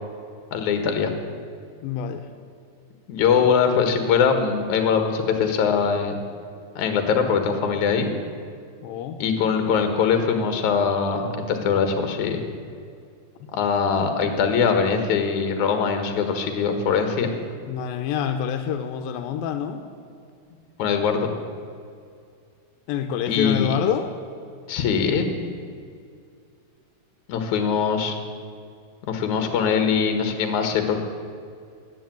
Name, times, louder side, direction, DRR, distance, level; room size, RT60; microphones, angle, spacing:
voice 1, 0.5-1.1 3.1-6.2 6.8-8.1 9.2-12.4 13.5-17.4 20.8-21.3 23.3-23.8 24.7-25.3 27.3-28.2 29.1-31.0, left 6 dB, 60° left, 6 dB, 2.7 m, -22 dB
voice 2, 1.8-2.3 8.8-9.2 13.4-13.5 17.7-19.8 22.9-24.1, left 8 dB, 85° left, 6 dB, 2.5 m, -27 dB
14.0 x 10.5 x 9.2 m, 2.3 s
omnidirectional pair, 4.1 m